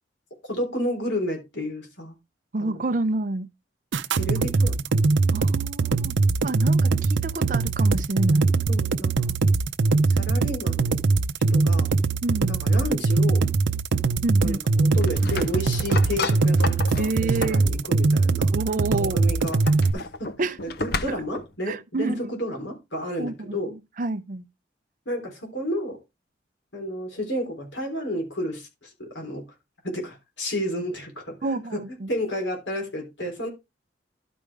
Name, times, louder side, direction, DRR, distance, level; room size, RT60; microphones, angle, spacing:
voice 1, 0.5-2.1 2.6-2.8 4.2-4.9 8.7-9.3 10.2-11.0 11.5-11.9 12.5-13.4 14.4-18.5 18.9-19.6 19.9-20.3 20.6-23.7 25.1-26.0 26.7-29.4 29.8-31.8 32.1-33.5, equal, 80° left, 3.6 m, -31 dB
voice 2, 2.5-3.5 5.3-6.2 6.4-8.5 12.2-12.6 14.2-14.6 17.0-17.6 18.5-19.3 20.4-20.8 21.1-21.2 21.7-22.2 23.2-24.4 31.4-32.1, right 2 dB, 45° right, 0.5 m, -28 dB
sound 1, 3.9-19.9, right 3 dB, 85° right, 0.6 m, -22 dB
sound 2, 14.9-17.7 19.3-21.5, left 3 dB, 55° left, 0.7 m, -32 dB
12.0 x 5.1 x 3.4 m
head